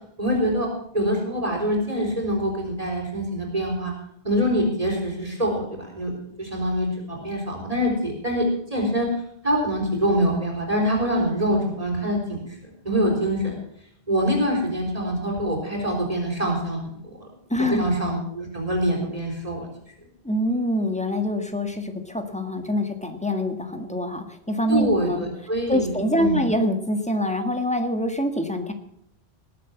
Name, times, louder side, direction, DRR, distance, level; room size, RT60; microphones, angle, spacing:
voice 1, 0.2-0.7 0.9-3.9 4.2-6.1 6.4-9.1 9.4-12.5 12.8-13.6 14.1-16.9 17.7-19.7 24.7-26.4, equal, 35° right, -1 dB, 4.2 m, -24 dB
voice 2, 17.5-17.9 20.2-25.2 25.7-28.7, equal, 5° left, 6 dB, 1.7 m, -25 dB
19.5 x 8.3 x 7.1 m, 0.69 s
omnidirectional pair, 1.1 m